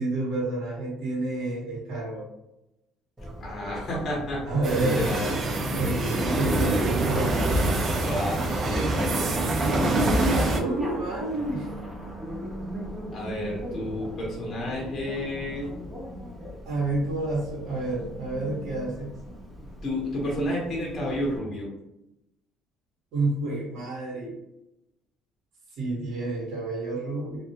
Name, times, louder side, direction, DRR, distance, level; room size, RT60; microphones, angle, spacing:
voice 1, 0.0-2.3 4.4-5.0 5.8-7.5 10.5-11.7 16.6-19.2 23.1-24.4 25.8-27.4, right 2 dB, 65° right, -5 dB, 1.0 m, -29 dB
Bicycle, 3.2-21.4, equal, 5° right, 0.7 m, -38 dB
voice 2, 3.4-4.4 4.8-5.4 7.9-9.3 13.1-15.7 19.8-21.7, left 1 dB, 30° left, -4 dB, 0.8 m, -31 dB
sound 1, 4.6-10.6, right 2 dB, 40° right, 0.4 m, -25 dB
2.2 x 2.0 x 2.7 m, 0.89 s
cardioid pair, 145°, 0 cm